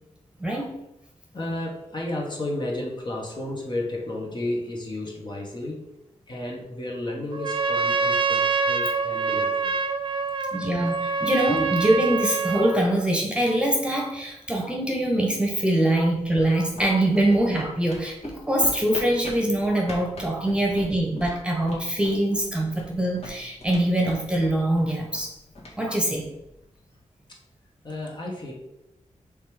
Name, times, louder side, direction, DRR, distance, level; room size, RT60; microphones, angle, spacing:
voice 1, 1.3-5.9 6.3-9.8 27.3-27.4 27.8-28.5, left 1 dB, 40° left, -2 dB, 1.4 m, -32 dB
Trumpet, 7.3-12.8, right 4 dB, 40° right, 0.5 m, -25 dB
voice 2, 10.5-25.3 25.8-26.3, right 1 dB, 10° right, -1 dB, 1.2 m, -23 dB
sound 1, 16.2-26.7, left 1 dB, 55° left, 1.8 m, -43 dB
5.3 x 3.5 x 5.0 m, 0.88 s
wide cardioid pair, 95°, 12 cm